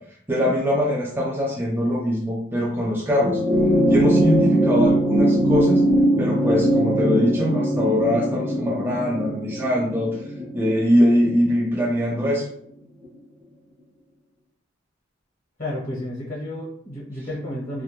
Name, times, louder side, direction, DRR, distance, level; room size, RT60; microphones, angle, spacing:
voice 1, 0.3-3.4 3.9-5.8 6.2-10.2 10.5-12.5, equal, 10° right, -3 dB, 0.3 m, -22 dB
sound 1, 3.2-11.8 13.0-13.1, right 1 dB, 45° right, 0.8 m, -21 dB
voice 2, 15.6-17.8, left 1 dB, 45° left, -6 dB, 0.8 m, -31 dB
2.3 x 2.1 x 2.8 m, 0.64 s
head